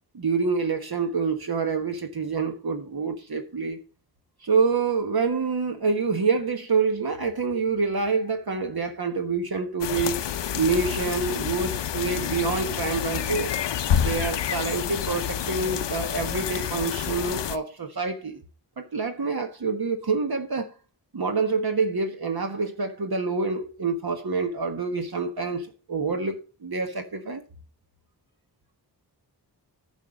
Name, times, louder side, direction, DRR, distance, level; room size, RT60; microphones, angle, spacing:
voice 1, 0.1-3.8 4.4-10.2 10.5-13.5 14.0-18.4 18.8-20.7 21.1-27.4, right 4 dB, 60° right, 1.5 m, -27 dB
sound 1, 9.8-17.6, left 9 dB, 85° left, 0.6 m, -28 dB
10.5 x 5.5 x 5.3 m
cardioid pair, 60°, 42 cm